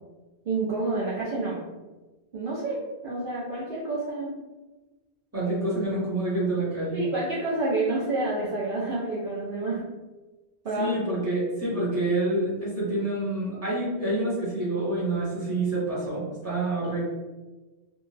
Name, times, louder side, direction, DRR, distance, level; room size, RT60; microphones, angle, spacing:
voice 1, 0.5-1.6 2.3-4.3 6.9-9.8 10.6-11.0, right 2 dB, 60° right, -7 dB, 0.7 m, -28 dB
voice 2, 5.3-7.0 10.8-17.0, right 2 dB, 15° right, -8 dB, 1.0 m, -27 dB
2.6 x 2.2 x 3.1 m, 1.2 s
omnidirectional pair, 1.1 m